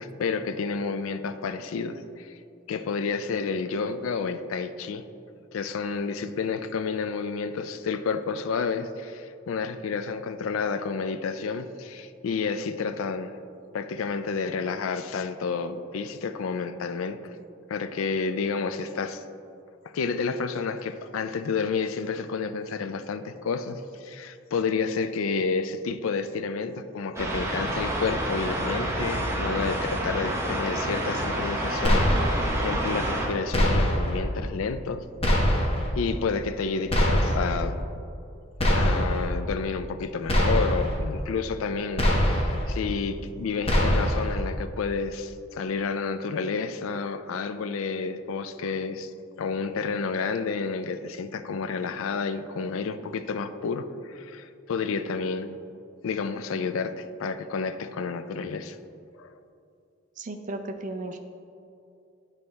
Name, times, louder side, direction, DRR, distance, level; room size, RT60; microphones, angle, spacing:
voice 1, 0.0-2.4 2.7-5.0 5.5-13.4 13.7-17.2 17.7-19.2 19.8-35.0 35.9-38.0 38.7-49.1 49.4-55.6 56.0-58.8 59.2-59.3, left 5 dB, 80° left, 10 dB, 0.4 m, -30 dB
sound 1, 27.2-33.3, right 1 dB, 15° right, 0.9 m, -29 dB
sound 2, 31.8-32.5 33.5-34.2 35.2-35.9 36.9-37.6 38.6-39.3 40.3-41.0 42.0-42.7 43.7-44.4, equal, 30° left, 0.9 m, -23 dB
voice 2, 60.2-61.2, right 2 dB, 40° right, 5 dB, 0.5 m, -35 dB
10.5 x 4.1 x 3.3 m, 2.6 s
head